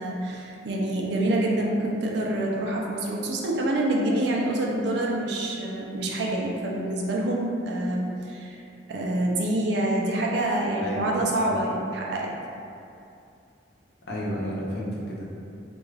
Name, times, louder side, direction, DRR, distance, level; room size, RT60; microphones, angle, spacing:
voice 1, 0.0-8.6 8.9-12.3, right 1 dB, 60° right, -2 dB, 0.4 m, -26 dB
voice 2, 14.1-15.3, equal, 55° left, -5 dB, 0.5 m, -32 dB
2.3 x 2.2 x 3.2 m, 2.6 s
head